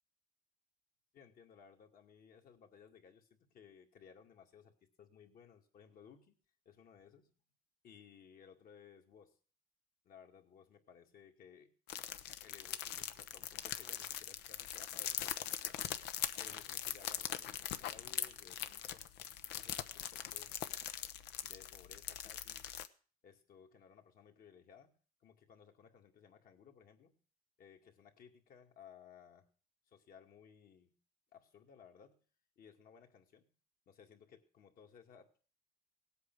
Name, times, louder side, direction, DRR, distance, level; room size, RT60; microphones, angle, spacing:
voice 1, 1.1-6.4 6.7-7.3 7.8-9.4 10.0-11.7 12.4-15.8 16.4-19.1 19.5-20.5 21.4-22.7 23.2-24.9 25.2-27.1 27.6-29.5 29.9-31.0 31.3-32.2 32.6-33.5 33.9-35.4, left 7 dB, 60° left, 4 dB, 2.3 m, -60 dB
sound 1, 11.9-22.9, left 11 dB, 90° left, 0.9 m, -42 dB
18.0 x 8.3 x 6.1 m, 0.41 s
cardioid pair, 110°, 17 cm